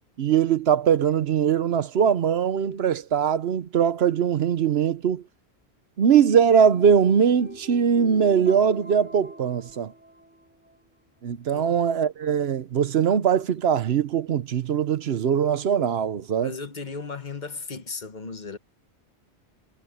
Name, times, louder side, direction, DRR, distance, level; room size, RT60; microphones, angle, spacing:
voice 1, 0.2-5.2 6.0-9.9 11.2-16.5, right 7 dB, 70° right, 1.0 m, -21 dB
sound 1, 6.5-10.8, right 1 dB, 10° right, 2.3 m, -44 dB
voice 2, 16.4-18.6, left 4 dB, 45° left, 1.2 m, -36 dB
omnidirectional pair, 1.1 m